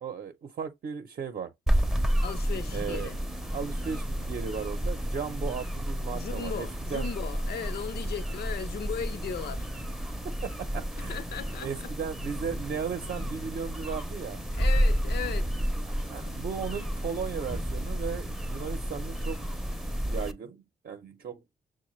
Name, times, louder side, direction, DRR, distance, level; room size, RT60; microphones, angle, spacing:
voice 1, 0.0-1.5 2.7-3.1 3.5-7.1 10.4-11.2 11.6-14.4 16.1-19.4 20.1-21.4, right 6 dB, 60° right, 0.6 m, -36 dB
sound 1, 1.7-20.3, equal, ahead, 0.5 m, -31 dB
voice 2, 2.2-3.2 6.1-9.7 11.0-11.7 14.5-15.5, left 7 dB, 70° left, 0.6 m, -37 dB
6.4 x 2.1 x 3.1 m
cardioid pair, 80°, 17 cm